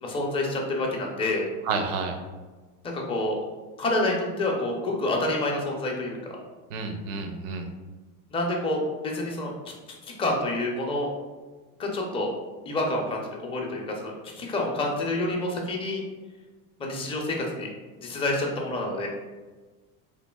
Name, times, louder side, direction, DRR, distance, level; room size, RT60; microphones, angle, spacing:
voice 1, 0.0-1.5 2.8-3.4 3.8-6.3 8.3-11.1 11.8-12.3 12.7-16.0 16.8-17.7 18.0-19.1, left 2 dB, 15° left, -1 dB, 0.4 m, -28 dB
voice 2, 1.6-2.2 6.7-7.7, right 4 dB, 70° right, 5 dB, 0.6 m, -30 dB
3.2 x 2.4 x 2.2 m, 1.3 s
supercardioid pair, 100°, 45 cm